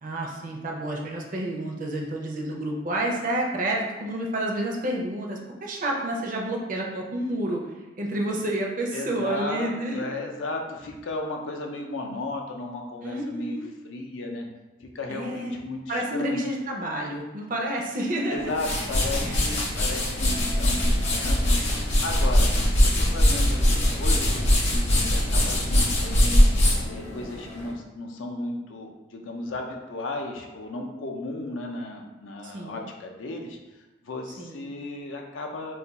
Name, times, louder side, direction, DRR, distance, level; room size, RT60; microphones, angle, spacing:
voice 1, 0.0-7.6 8.0-10.1 13.0-13.7 15.1-15.6 15.9-18.4 18.7-18.9 19.2-19.4 32.4-32.8 34.4-34.7, right 1 dB, 40° right, 0 dB, 0.4 m, -29 dB
voice 2, 8.9-13.6 13.8-14.5 14.8-16.4 18.3-22.5 22.8-26.4 26.8-33.6 34.0-35.8, left 2 dB, 75° left, 2 dB, 0.5 m, -34 dB
sound 1, 18.3-27.7, left 1 dB, 35° left, 0.6 m, -22 dB
2.3 x 2.2 x 3.9 m, 1.1 s
head